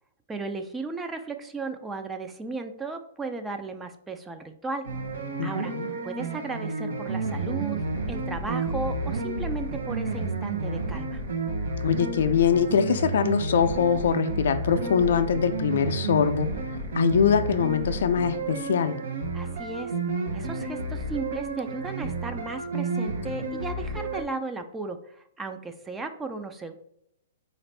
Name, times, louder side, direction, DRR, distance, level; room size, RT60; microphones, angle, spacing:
voice 1, 0.3-4.9 5.4-5.7 6.0-7.8 8.1-11.2 19.3-19.9 20.3-26.7, right 3 dB, 10° right, 7 dB, 0.3 m, -35 dB
sound 1, 4.8-24.2, right 3 dB, 75° right, 0.8 m, -31 dB
voice 2, 5.4-5.9 11.8-16.5 16.9-19.0, left 7 dB, 70° left, 9 dB, 0.4 m, -23 dB
4.2 x 2.5 x 3.2 m, 0.73 s
hypercardioid pair, 140°, 0 cm